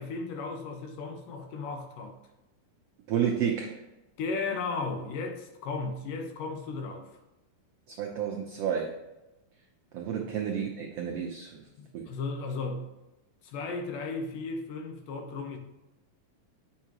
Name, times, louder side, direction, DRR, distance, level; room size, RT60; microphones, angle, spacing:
voice 1, 0.0-2.2 4.2-7.1 10.1-10.3 11.8-12.9 13.4-15.6, left 4 dB, 75° left, 2.7 m, -35 dB
voice 2, 3.1-3.7 8.0-8.9 9.9-11.6 11.9-12.0, right 8 dB, 85° right, 1.3 m, -30 dB
9.3 x 5.6 x 2.9 m
omnidirectional pair, 3.9 m